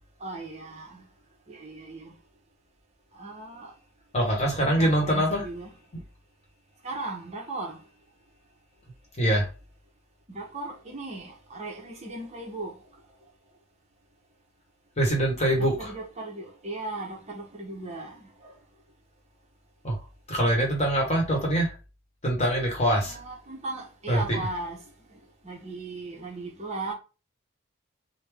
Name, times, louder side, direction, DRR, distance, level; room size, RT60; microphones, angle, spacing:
voice 1, 0.2-1.1 1.5-2.1 3.2-3.7 4.3-5.7 6.8-7.8 10.3-12.7 15.6-18.5 23.0-24.8 25.1-25.2 25.4-26.9, right 2 dB, 30° right, 0.9 m, -37 dB
voice 2, 4.1-5.4 9.2-9.5 15.0-15.9 19.8-20.0 20.3-21.7 22.2-23.2 24.1-24.4, right 1 dB, 30° left, 1.1 m, -24 dB
3.4 x 2.2 x 3.4 m
head